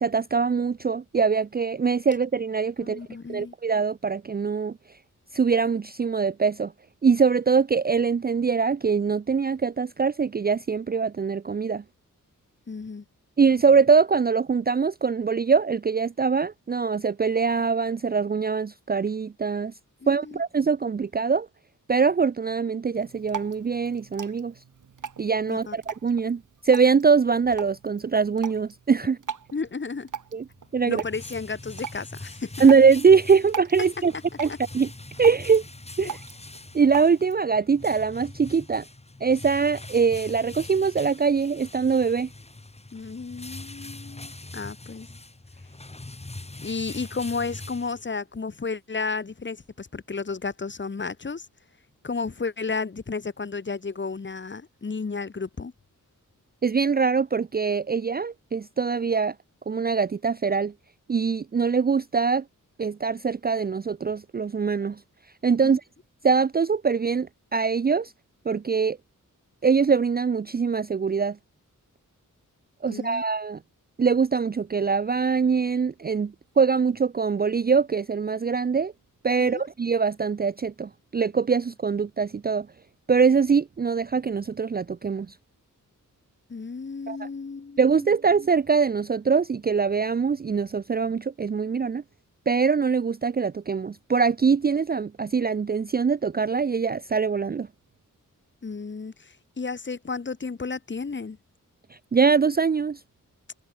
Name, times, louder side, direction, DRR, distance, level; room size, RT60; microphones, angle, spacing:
voice 1, 0.0-3.0 3.3-4.8 5.3-6.7 7.0-11.8 13.4-19.7 20.1-21.5 21.9-24.5 25.2-29.2 30.3-30.4 30.7-31.0 32.6-34.1 34.4-34.9 35.2-35.6 36.0-36.2 36.7-38.8 39.2-42.3 56.6-59.3 59.7-60.7 61.1-62.4 62.8-65.0 65.4-65.8 66.2-68.1 68.5-69.0 69.6-71.4 72.8-73.6 74.0-78.9 79.2-82.7 83.1-85.3 87.1-87.3 87.8-92.0 92.5-97.7 102.1-103.0, right 5 dB, 30° right, 0.5 m, -23 dB
voice 2, 2.8-3.5 12.7-13.0 20.0-20.4 25.5-25.8 29.5-30.1 30.8-32.7 34.5-34.6 36.0-36.1 42.9-45.1 46.6-51.5 52.0-55.7 65.6-65.8 72.9-73.2 79.4-79.6 86.5-88.1 98.6-101.4, left 4 dB, 35° left, 2.4 m, -33 dB
Drip, 22.9-37.4, right 7 dB, 70° right, 3.2 m, -41 dB
sound 1, 30.5-48.4, left 2 dB, 20° left, 7.5 m, -43 dB
wide cardioid pair, 150°, 32 cm